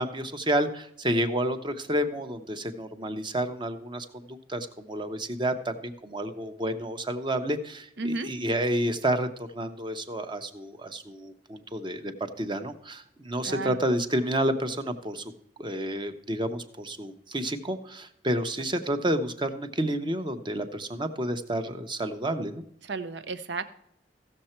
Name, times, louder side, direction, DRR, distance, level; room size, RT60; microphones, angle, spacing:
voice 1, 0.0-12.1 12.4-15.3 15.6-22.6, right 1 dB, 25° right, 8 dB, 0.8 m, -30 dB
voice 2, 8.0-8.3 13.4-13.8 22.8-23.7, right 3 dB, 80° right, 12 dB, 0.8 m, -33 dB
15.5 x 6.6 x 4.4 m, 0.72 s
head